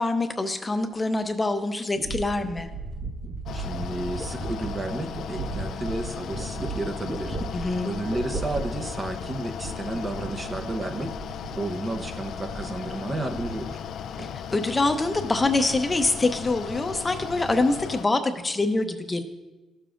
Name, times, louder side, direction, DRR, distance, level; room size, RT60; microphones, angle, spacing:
voice 1, 0.0-2.7 7.5-7.9 14.2-19.2, left 2 dB, 20° left, 7 dB, 0.7 m, -25 dB
sound 1, 1.2-1.3 2.0-11.6 11.9-12.8 13.1-13.9 14.2-14.7, right 3 dB, 50° right, 1.5 m, -36 dB
Mechanical fan, 3.5-18.1, left 8 dB, 75° left, 0.3 m, -36 dB
voice 2, 3.5-7.4 7.8-11.1 11.6-13.8, right 2 dB, 25° right, 5 dB, 0.8 m, -32 dB
14.5 x 6.8 x 2.5 m, 1.1 s
cardioid pair, 90°, 0 cm